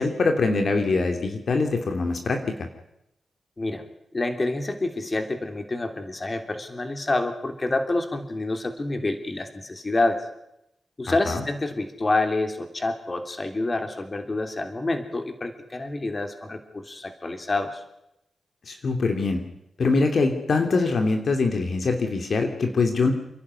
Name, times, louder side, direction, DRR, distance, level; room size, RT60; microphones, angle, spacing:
voice 1, 0.0-2.5 11.3-11.4 18.7-19.4 19.8-23.1, left 3 dB, 65° left, 5 dB, 2.8 m, -23 dB
voice 2, 4.1-10.2 11.0-17.8, left 2 dB, 35° left, 6 dB, 3.2 m, -27 dB
29.0 x 11.5 x 9.8 m, 0.84 s
cardioid pair, 50°, 0 cm